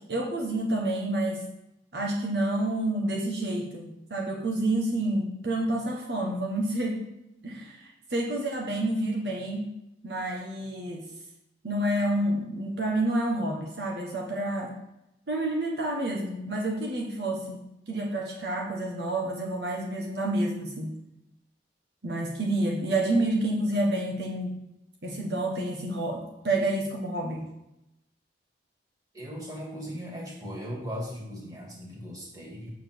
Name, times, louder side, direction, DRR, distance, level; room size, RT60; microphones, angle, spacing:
voice 1, 0.1-1.5 1.9-7.0 7.4-9.7 10.0-11.1 11.6-14.7 15.3-20.9 22.0-24.6 25.0-27.4, right 1 dB, 65° right, -1 dB, 1.3 m, -29 dB
voice 2, 29.1-32.7, equal, 20° right, -3 dB, 2.2 m, -38 dB
7.4 x 7.1 x 4.6 m, 0.87 s
head